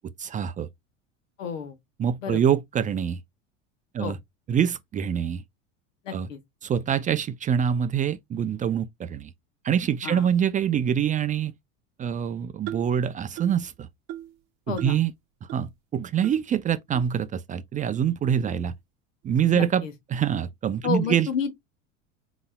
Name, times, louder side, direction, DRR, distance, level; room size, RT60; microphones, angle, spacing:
voice 1, 0.2-0.7 2.0-3.2 3.9-4.2 4.5-5.4 6.1-6.3 6.6-9.3 9.6-11.5 12.0-13.9 14.7-15.1 15.5-18.7 19.2-19.8 20.1-21.3, right 8 dB, 20° right, 0.3 m, -25 dB
voice 2, 1.4-1.8 2.2-2.4 4.0-4.1 6.0-6.4 10.0-10.3 14.7-15.0 19.5-19.9 20.8-21.5, left 7 dB, 90° left, 1.3 m, -30 dB
sound 1, 12.7-13.0 13.4-13.7 14.1-14.4 14.8-15.0 15.5-15.6 16.2-16.4 16.9-17.0 17.7-17.8 18.5-18.6, right 12 dB, 60° right, 0.8 m, -38 dB
4.1 x 4.0 x 2.2 m
hypercardioid pair, 100°, 37 cm